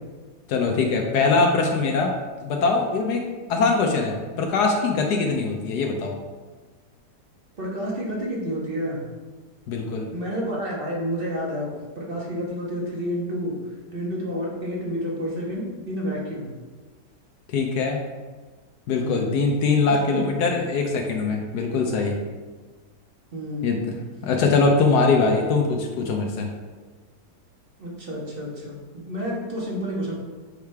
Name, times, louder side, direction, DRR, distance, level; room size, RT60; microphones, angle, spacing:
voice 1, 0.5-2.1 2.4-3.2 3.5-6.1 9.7-10.1 17.5-18.0 18.9-22.2 23.6-23.9 24.2-26.5, left 4 dB, 75° left, 2 dB, 1.2 m, -22 dB
voice 2, 7.6-9.0 10.1-11.7 11.9-13.6 13.9-16.5 18.9-19.4 19.8-20.2 23.3-23.7 27.8-30.1, equal, 35° right, -4 dB, 1.4 m, -30 dB
6.6 x 4.9 x 3.5 m, 1.4 s
omnidirectional pair, 1.8 m